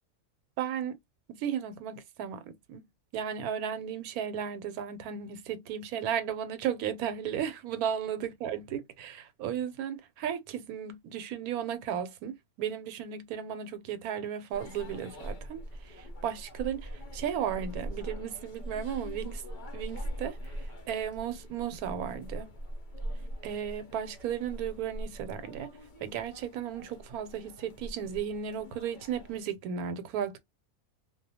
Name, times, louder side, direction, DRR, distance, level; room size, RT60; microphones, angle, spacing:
voice 1, 0.6-1.0 1.3-2.9 3.1-19.4 19.7-22.5 23.4-25.7 26.0-30.4, right 9 dB, 85° right, 1.1 m, -35 dB
sound 1, 14.5-29.4, equal, 55° left, 0.5 m, -42 dB
2.3 x 2.2 x 2.7 m
omnidirectional pair, 1.5 m